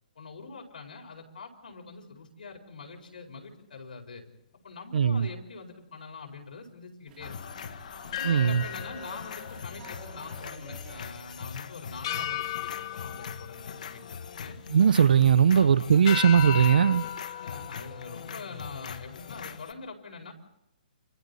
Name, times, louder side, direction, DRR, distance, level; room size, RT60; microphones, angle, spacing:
voice 1, 0.1-4.2 4.6-7.4 8.2-14.6 15.5-15.9 17.4-20.3, left 4 dB, 75° left, 4.7 m, -44 dB
voice 2, 4.9-5.3 8.2-8.6 14.7-17.0, right 8 dB, 70° right, 0.7 m, -20 dB
sound 1, 7.1-12.2, right 6 dB, 20° right, 4.1 m, -52 dB
sound 2, 7.2-19.7, left 6 dB, 55° left, 1.1 m, -42 dB
sound 3, 8.1-10.6 10.9-11.1 12.0-14.6 15.0-15.5 16.1-18.9, left 12 dB, 35° left, 1.1 m, -36 dB
29.5 x 25.5 x 4.2 m
hypercardioid pair, 170°, 5 cm